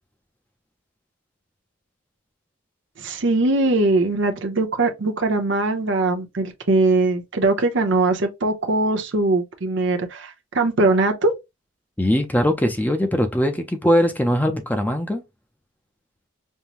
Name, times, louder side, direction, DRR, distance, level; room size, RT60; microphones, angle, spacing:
voice 1, 3.0-11.3, right 2 dB, 60° right, 0.8 m, -21 dB
voice 2, 12.0-15.2, equal, 10° left, 0.5 m, -21 dB
5.4 x 2.1 x 2.9 m
head